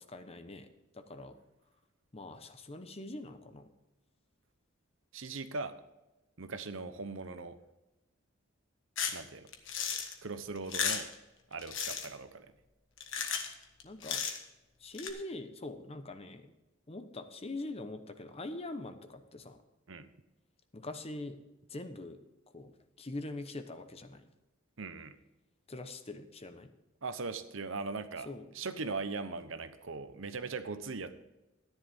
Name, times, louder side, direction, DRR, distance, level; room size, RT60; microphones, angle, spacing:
voice 1, 0.0-1.4 2.1-3.7 13.8-14.2 14.8-16.5 16.9-19.6 20.7-21.4 21.7-22.2 22.5-22.7 23.0-24.2 25.7-26.7 28.2-28.5, left 2 dB, 30° left, 9 dB, 0.9 m, -43 dB
voice 2, 5.1-5.8 6.4-7.6 9.1-9.5 10.2-11.1 11.5-12.5 19.9-20.1 24.8-25.2 27.0-28.3 28.5-31.1, right 4 dB, 65° right, 11 dB, 0.9 m, -39 dB
sound 1, 9.0-9.2 9.5-10.1 10.6-11.1 11.6-12.1 13.0-13.5 13.8-14.4 14.9-15.1, left 7 dB, 65° left, 1.4 m, -34 dB
13.5 x 10.5 x 3.6 m, 1.0 s
head